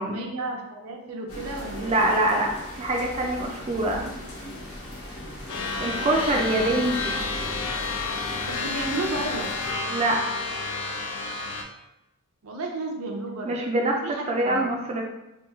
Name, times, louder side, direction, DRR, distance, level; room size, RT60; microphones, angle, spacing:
voice 1, 0.0-2.0 6.5-7.0 8.4-9.5 12.4-13.6 14.0-14.6, right 2 dB, 90° right, 1 dB, 0.6 m, -33 dB
sound 1, 1.3-9.7, left 1 dB, 90° left, 1.1 m, -38 dB
voice 2, 1.8-2.5 2.8-4.1 5.8-7.2 9.9-10.2 13.5-15.0, right 1 dB, 30° right, 1 dB, 0.4 m, -24 dB
sound 2, 5.5-11.6, left 3 dB, 70° left, 0.5 m, -30 dB
2.9 x 2.3 x 3.5 m, 0.96 s
head